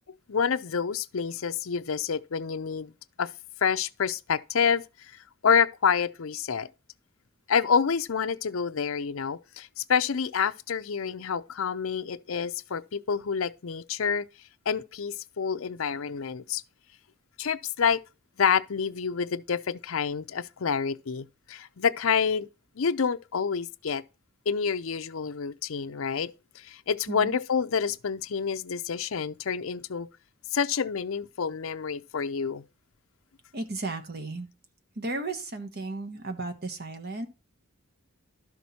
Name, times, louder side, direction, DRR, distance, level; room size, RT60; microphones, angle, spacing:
voice 1, 0.3-2.9 3.2-3.3 3.6-4.8 5.4-6.7 7.5-14.3 14.7-16.6 17.4-18.0 18.4-22.5 22.8-24.0 24.5-30.1 30.5-32.6, left 6 dB, 65° left, 0.6 m, -28 dB
voice 2, 27.1-27.4 33.5-34.5 35.0-37.3, right 2 dB, 45° right, 1.3 m, -34 dB
12.0 x 5.9 x 4.2 m
head